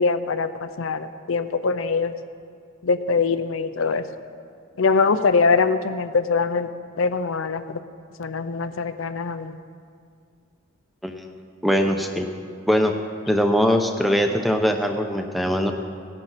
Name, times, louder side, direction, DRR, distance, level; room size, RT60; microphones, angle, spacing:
voice 1, 0.0-2.1 2.8-4.0 4.8-6.7 7.0-7.8 8.2-9.6, left 4 dB, 70° left, 11 dB, 0.6 m, -23 dB
voice 2, 11.6-12.3 12.7-12.9 13.3-15.7, equal, ahead, 4 dB, 0.7 m, -21 dB
18.0 x 10.5 x 4.2 m, 2.2 s
head